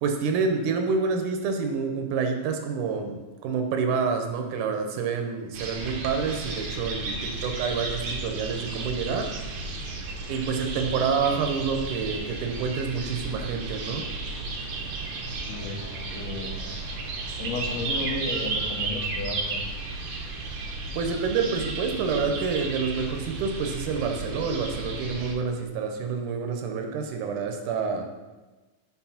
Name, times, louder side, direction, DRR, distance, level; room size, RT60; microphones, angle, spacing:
voice 1, 0.0-9.3 10.3-14.1 20.9-28.1, right 5 dB, 85° right, 4 dB, 2.3 m, -28 dB
sound 1, 5.5-25.3, right 3 dB, 70° right, 1.4 m, -33 dB
voice 2, 15.4-16.5 17.4-19.6, left 3 dB, 65° left, 1 dB, 2.1 m, -33 dB
7.0 x 4.3 x 5.7 m, 1.2 s
omnidirectional pair, 3.5 m